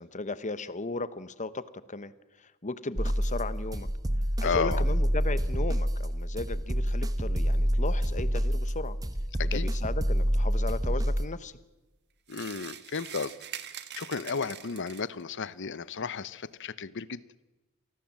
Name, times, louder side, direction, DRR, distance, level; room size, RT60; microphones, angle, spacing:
voice 1, 0.0-3.9 4.4-9.0 9.4-11.5, left 3 dB, 35° left, 15 dB, 1.0 m, -36 dB
sound 1, 3.0-11.3, equal, 15° right, 1.0 m, -27 dB
voice 2, 4.4-4.8 9.4-9.7 12.3-13.3 13.9-17.2, left 5 dB, 55° left, 17 dB, 0.8 m, -33 dB
sound 2, 12.3-15.2, right 10 dB, 50° right, 1.4 m, -43 dB
28.0 x 19.0 x 7.6 m, 1.1 s
head